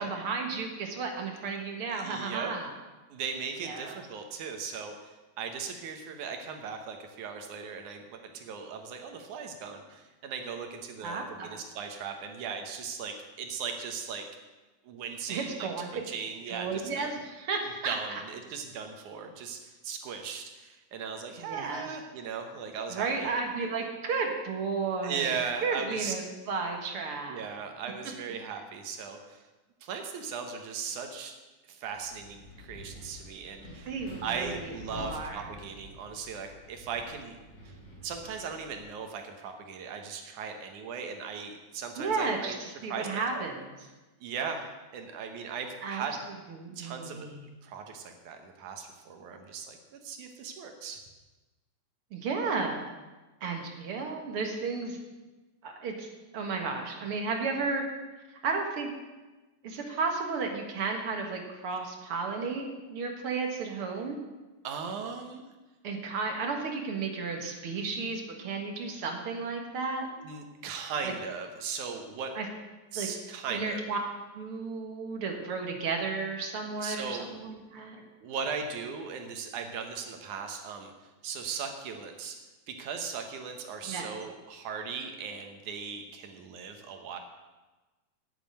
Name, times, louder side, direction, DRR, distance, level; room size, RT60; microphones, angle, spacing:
voice 1, 0.0-2.7 3.6-4.0 11.0-11.6 15.3-16.0 16.5-18.2 21.4-21.9 22.9-27.5 33.9-35.4 42.0-43.6 45.8-46.0 46.5-47.4 52.1-52.9 53.4-55.0 55.6-56.1 56.3-57.8 58.4-58.9 59.6-64.2 65.8-70.1 71.0-71.1 72.4-72.5 73.0-73.1 73.5-74.0 74.3-78.0 83.9-84.1, right 4 dB, 50° right, 3 dB, 2.1 m, -33 dB
voice 2, 1.9-2.5 3.1-14.3 14.8-15.7 16.0-17.1 17.8-19.6 19.8-23.3 25.0-26.1 27.3-29.4 29.8-31.3 31.7-33.9 34.2-37.4 37.7-37.8 38.0-42.6 42.9-43.5 44.2-46.2 46.8-47.3 47.6-51.0 64.6-65.4 70.2-72.3 72.9-73.8 76.8-77.3 78.2-80.9 81.2-82.4 82.7-87.2, right 6 dB, 75° right, 5 dB, 2.5 m, -38 dB
Wind, 31.9-38.8, equal, 35° left, 3.7 m, -48 dB
9.2 x 8.8 x 8.8 m, 1.2 s
omnidirectional pair, 3.6 m